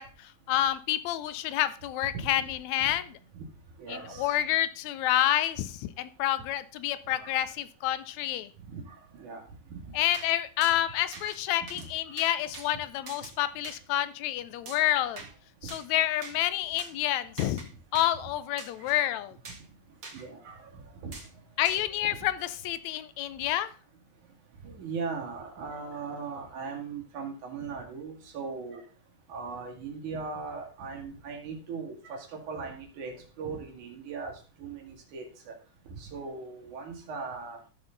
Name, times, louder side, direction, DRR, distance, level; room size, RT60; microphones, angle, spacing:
voice 1, 0.0-3.2 3.9-8.5 9.9-15.2 15.6-19.4 21.6-23.7, left 13 dB, 75° left, 14 dB, 1.9 m, -29 dB
voice 2, 3.8-4.4 7.1-7.3 8.7-9.4 9.7-9.9 12.2-12.4 15.9-16.1 20.1-21.1 21.8-21.9 24.6-28.8 29.3-34.3 34.6-35.5 35.9-37.6, right 4 dB, 80° right, 1 dB, 3.6 m, -39 dB
sound 1, 10.1-10.3 10.6-10.7 11.1-11.4 11.7-11.9 12.2-12.7 13.1-13.3 13.6-13.8 14.7-15.3 15.7-15.9 16.2-16.4 16.8-16.9 17.4-17.7 17.9-18.1 18.6-18.9 19.4-19.7 20.0-20.2 21.1-21.3 21.6-21.8, right 3 dB, 40° right, 2.2 m, -44 dB
14.0 x 6.7 x 3.9 m, 0.38 s
omnidirectional pair, 3.5 m